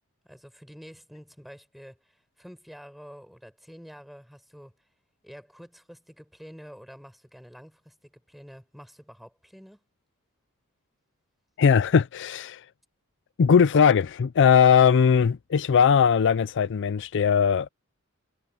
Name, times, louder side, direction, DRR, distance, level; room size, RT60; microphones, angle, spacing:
voice 1, 0.2-4.7 5.2-9.8, equal, ahead, 6.2 m, -48 dB
voice 2, 11.6-12.6 13.4-17.7, left 7 dB, 55° left, 0.4 m, -19 dB
head